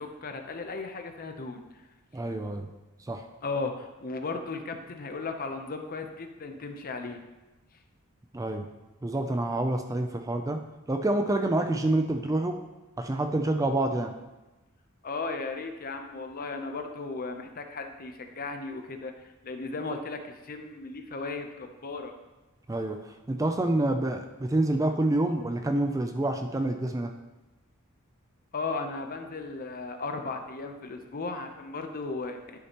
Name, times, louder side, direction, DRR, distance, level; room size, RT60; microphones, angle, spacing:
voice 1, 0.0-1.8 3.4-7.2 15.0-22.1 28.5-32.4, left 3 dB, 45° left, 5 dB, 0.7 m, -36 dB
voice 2, 2.1-2.7 3.1-3.2 8.3-8.7 9.0-10.6 10.9-12.6 13.0-14.1 22.7-23.0 23.3-27.1, right 2 dB, 15° right, 6 dB, 0.4 m, -27 dB
10.5 x 6.6 x 3.0 m, 1.1 s
head